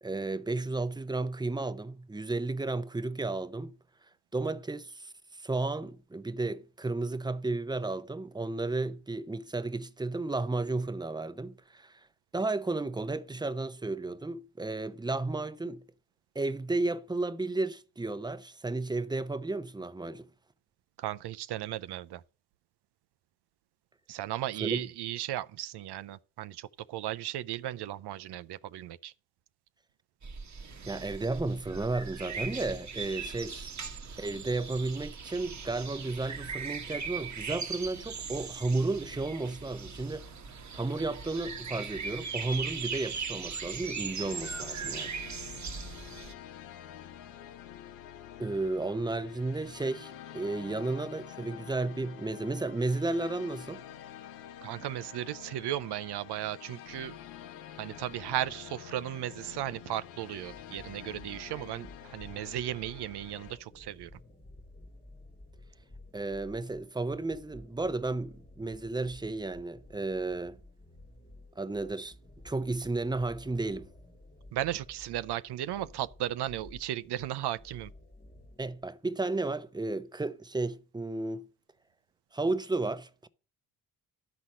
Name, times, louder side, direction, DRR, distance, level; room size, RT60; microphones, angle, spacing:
voice 1, 0.0-3.7 4.3-12.0 12.3-15.8 16.3-20.3 24.6-24.9 30.9-33.7 34.2-40.3 40.7-45.1 48.4-53.8 66.1-70.6 71.6-72.1 72.4-73.9 78.6-81.4 82.3-83.3, right 2 dB, 10° right, 0.8 m, -33 dB
voice 2, 21.0-22.2 24.1-29.1 54.6-57.2 57.8-64.1 74.5-77.9, right 13 dB, 70° right, 0.6 m, -36 dB
sound 1, 30.2-46.3, right 5 dB, 40° right, 1.1 m, -39 dB
sound 2, 44.2-63.6, left 10 dB, 90° left, 0.9 m, -48 dB
sound 3, 60.4-78.9, left 1 dB, 15° left, 1.4 m, -53 dB
12.5 x 4.2 x 7.5 m
supercardioid pair, 55°, 42 cm